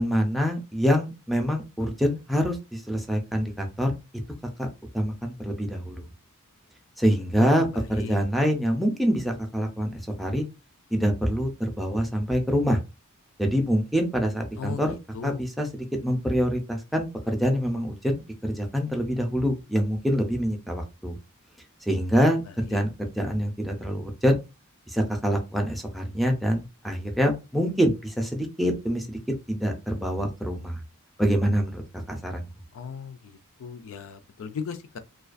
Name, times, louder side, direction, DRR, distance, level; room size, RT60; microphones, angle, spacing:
voice 1, 0.0-4.0 4.6-4.7 4.9-6.1 7.0-10.4 10.9-12.8 13.4-14.9 15.2-21.2 21.8-24.4 24.9-29.2 29.5-30.8 31.2-31.8 32.1-32.5, equal, ahead, 0.5 m, -25 dB
voice 2, 7.4-7.7 7.9-8.2 14.6-14.8 15.1-15.4 22.7-22.8 32.7-33.2 33.6-35.0, left 6 dB, 65° left, 0.4 m, -35 dB
2.3 x 2.3 x 2.4 m
head